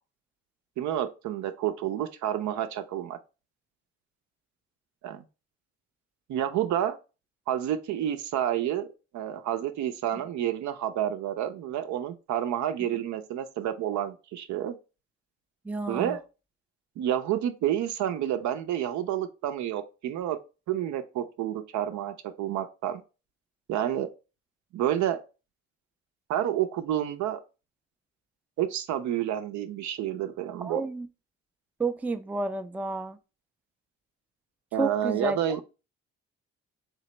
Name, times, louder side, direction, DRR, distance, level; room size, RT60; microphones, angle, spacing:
voice 1, 0.8-3.2 5.0-5.2 6.3-7.0 7.5-8.9 9.1-14.8 15.9-16.2 17.0-20.4 20.7-23.0 23.7-24.1 24.7-25.2 26.3-27.4 28.6-30.8 34.7-35.6, right 11 dB, 70° right, 0.6 m, -29 dB
voice 2, 15.6-16.2 30.6-31.1 31.8-33.2 34.7-35.6, right 3 dB, 5° right, 0.4 m, -31 dB
3.9 x 2.9 x 3.1 m
supercardioid pair, 60°, 29 cm